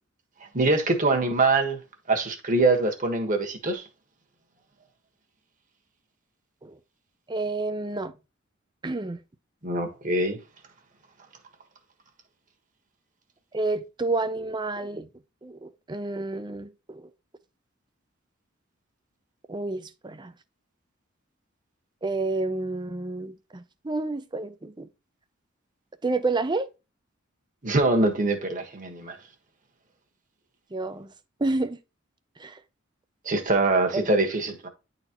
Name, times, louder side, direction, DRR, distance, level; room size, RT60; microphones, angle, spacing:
voice 1, 0.5-1.8 2.1-3.8 9.6-10.4 27.6-29.1 33.2-34.7, right 2 dB, 40° right, 1.4 m, -23 dB
voice 2, 7.3-8.1 8.8-9.2 13.5-15.1 15.4-17.1 19.5-20.3 22.0-24.9 26.0-26.7 30.7-31.1 31.4-31.8 32.4-32.6 33.9-34.1, right 2 dB, 20° right, 0.6 m, -29 dB
10.5 x 4.1 x 3.0 m
head